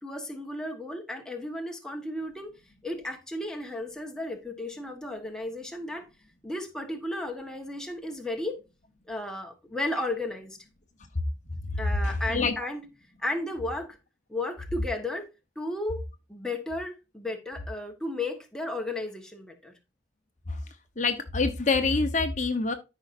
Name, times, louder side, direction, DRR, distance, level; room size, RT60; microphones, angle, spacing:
voice 1, 0.0-2.5 2.8-6.1 6.4-8.6 9.1-10.6 11.8-12.9 13.2-14.0 14.3-15.3 15.5-16.0 16.3-19.7, left 1 dB, 5° left, 1.3 m, -34 dB
voice 2, 12.0-12.5 21.0-22.7, left 4 dB, 40° left, 1.0 m, -26 dB
13.0 x 5.6 x 2.6 m
head